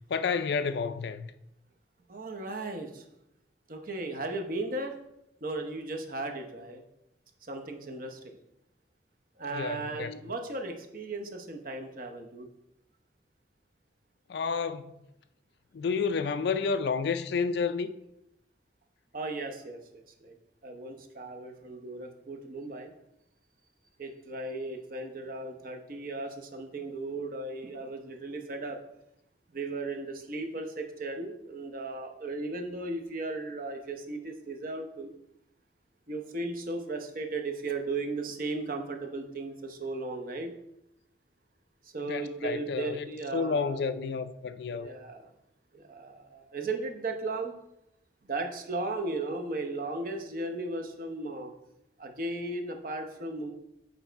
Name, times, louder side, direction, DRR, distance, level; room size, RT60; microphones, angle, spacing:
voice 1, 0.1-1.3 9.5-10.1 14.3-14.9 15.7-17.9 42.0-44.9, left 5 dB, 60° left, 0.4 m, -30 dB
voice 2, 2.1-3.0 3.7-5.0 5.4-6.8 7.4-8.4 9.4-12.5 19.1-20.3 20.6-22.9 24.0-28.8 29.5-35.1 36.1-40.6 41.8-43.9 44.7-45.3 45.7-47.5 48.3-51.5 52.0-53.5, right 2 dB, 45° right, 0.8 m, -36 dB
7.1 x 4.0 x 4.5 m
head